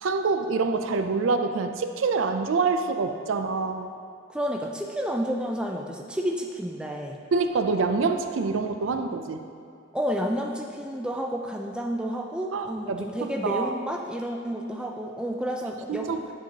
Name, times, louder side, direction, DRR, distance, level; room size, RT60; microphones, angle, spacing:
voice 1, 0.0-3.9 7.3-9.4 12.5-13.8 15.9-16.2, right 4 dB, 85° right, 7 dB, 0.4 m, -26 dB
voice 2, 4.3-7.2 9.9-16.1, equal, 5° right, 1 dB, 0.3 m, -30 dB
10.0 x 4.5 x 2.8 m, 2.6 s
head